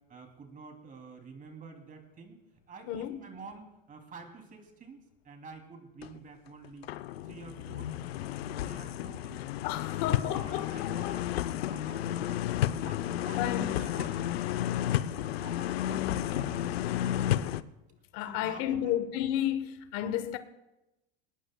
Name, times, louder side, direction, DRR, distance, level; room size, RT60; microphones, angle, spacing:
voice 1, 0.1-2.4 2.7-6.9 7.2-7.9 8.6-9.4 9.8-12.5 12.8-17.0 18.2-18.9, right 4 dB, 25° right, 2.9 m, -49 dB
voice 2, 2.9-3.2 9.6-11.1 13.4-13.8 18.1-20.4, left 11 dB, 55° left, 1.1 m, -32 dB
sound 1, 6.0-6.2 6.6-17.6, left 12 dB, 85° left, 0.7 m, -32 dB
21.5 x 18.5 x 2.3 m
hypercardioid pair, 100°, 30 cm